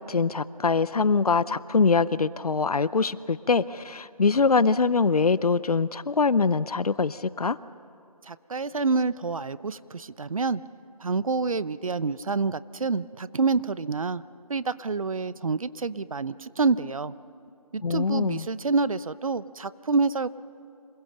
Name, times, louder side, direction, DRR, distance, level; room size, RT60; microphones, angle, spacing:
voice 1, 0.0-7.6 17.8-18.5, left 4 dB, 75° left, 18 dB, 0.7 m, -23 dB
voice 2, 8.2-10.6 11.0-14.2 14.5-17.1 17.7-20.3, right 4 dB, 60° right, 17 dB, 0.7 m, -27 dB
27.0 x 21.5 x 6.6 m, 2.9 s
figure-of-eight pair, 165°, 19 cm